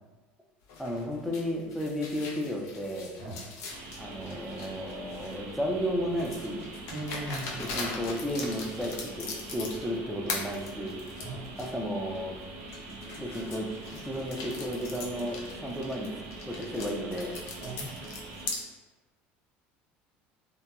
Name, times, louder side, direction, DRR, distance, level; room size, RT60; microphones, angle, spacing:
sound 1, 0.7-5.5 6.2-10.0 10.3-11.7 12.2-12.3 12.7-18.6, left 4 dB, 70° left, 0.5 m, -40 dB
voice 1, 0.8-3.1 4.0-6.7 7.6-11.0 11.6-12.3 12.9-16.1 16.4-17.3, equal, ahead, 0 dB, 0.4 m, -33 dB
sound 2, 3.7-18.5, right 2 dB, 65° right, 0.4 m, -44 dB
voice 2, 6.9-7.8 11.2-11.4 17.6-18.0, right 2 dB, 80° right, -5 dB, 1.1 m, -38 dB
2.8 x 2.1 x 2.3 m, 1.2 s
supercardioid pair, 100°, 5 cm